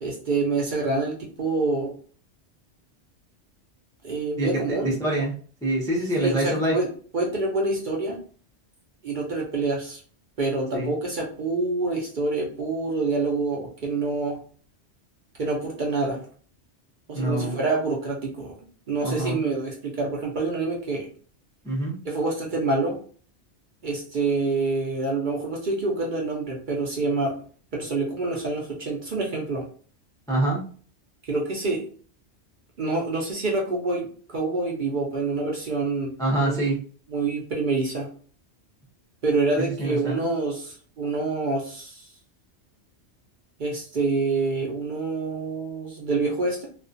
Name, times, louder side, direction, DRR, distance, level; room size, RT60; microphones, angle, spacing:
voice 1, 0.0-1.9 4.0-4.9 6.2-6.9 7.1-8.2 9.0-10.0 10.4-14.4 15.4-16.2 17.1-18.6 18.9-21.1 22.0-22.9 23.8-27.3 27.7-29.6 31.3-31.8 32.8-36.8 37.1-38.1 39.2-42.1 43.6-46.7, right 3 dB, 55° right, -2 dB, 0.6 m, -27 dB
voice 2, 4.4-5.3 5.6-6.8 10.7-10.9 17.1-17.6 19.0-19.4 21.6-21.9 30.3-30.6 36.2-36.8 39.6-40.2, right 1 dB, 5° left, -3 dB, 0.3 m, -25 dB
2.3 x 2.1 x 2.5 m, 0.43 s
omnidirectional pair, 1.2 m